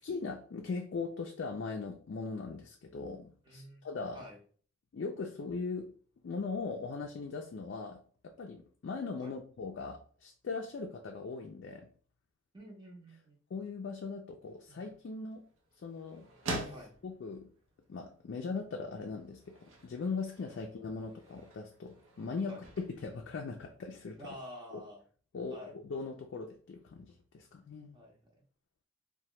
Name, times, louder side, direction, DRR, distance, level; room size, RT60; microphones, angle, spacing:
voice 1, 0.0-4.2 4.9-5.9 6.2-11.9 13.5-15.4 15.8-16.6 17.0-17.5 17.9-24.2 24.7-24.8 25.3-28.0, left 4 dB, 60° left, 1 dB, 0.3 m, -40 dB
voice 2, 3.4-3.9 4.1-4.4 9.2-9.3 12.5-13.4 14.7-14.8 16.7-16.9 22.5-22.6 24.2-25.0 25.5-25.7 27.9-28.5, equal, 20° right, -1 dB, 0.7 m, -49 dB
sound 1, 14.4-24.2, right 2 dB, 85° right, 0.7 m, -47 dB
2.8 x 2.2 x 3.1 m, 0.44 s
head